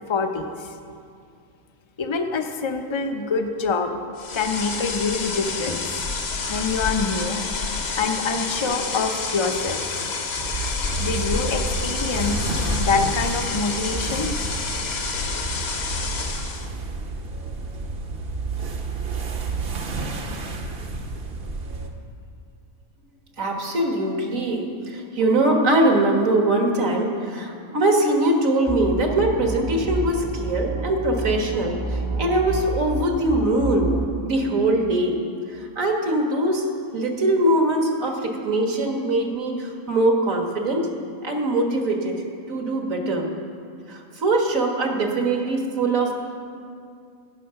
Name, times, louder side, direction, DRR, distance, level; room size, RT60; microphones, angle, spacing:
voice 1, 0.1-0.7 2.0-3.9 4.3-6.0 6.5-7.4 8.0-10.1 11.0-12.5 12.8-14.3, left 4 dB, 35° left, 6 dB, 0.5 m, -25 dB
sound 1, 4.2-16.7, left 4 dB, 50° left, 1.1 m, -29 dB
sound 2, 10.4-21.9, right 3 dB, 45° right, 1.0 m, -30 dB
voice 2, 23.4-33.9 34.2-35.2 35.5-36.7 36.9-40.9 41.2-42.1 42.5-43.3 43.9-46.1, right 1 dB, 70° right, 2 dB, 1.8 m, -22 dB
sound 3, 28.7-34.1, right 2 dB, 25° right, 0.8 m, -29 dB
16.5 x 6.4 x 5.7 m, 2.4 s
omnidirectional pair, 1.5 m